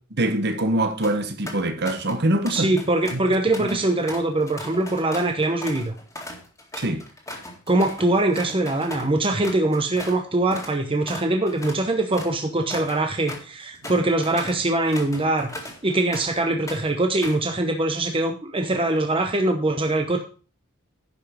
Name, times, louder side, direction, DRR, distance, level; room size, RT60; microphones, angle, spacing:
voice 1, 0.1-2.7 3.1-3.2 3.6-3.8 6.8-7.0 13.8-13.9, right 1 dB, 50° right, 1.2 m, -24 dB
sound 1, 1.0-1.2 1.5-2.2 2.5-10.2 10.5-10.8 11.1-16.4 16.7-17.5, left 1 dB, 15° left, 2.0 m, -38 dB
voice 2, 2.5-5.9 7.7-15.5 15.8-20.2, right 2 dB, 25° right, 0.8 m, -23 dB
10.5 x 5.6 x 5.0 m
head